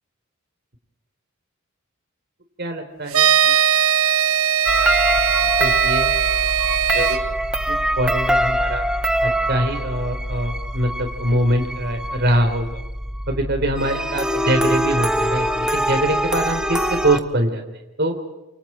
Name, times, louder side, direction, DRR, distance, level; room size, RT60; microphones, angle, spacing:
voice 1, 2.6-3.5 5.6-6.1 6.9-7.2 7.7-8.8 9.2-12.8 13.3-17.6 18.0-18.2, right 1 dB, 50° right, 6 dB, 3.6 m, -23 dB
sound 1, 3.1-7.2, right 9 dB, 75° right, 1.6 m, -19 dB
sound 2, 4.7-17.2, equal, 5° right, 0.9 m, -23 dB
29.5 x 24.0 x 4.5 m, 1.0 s
head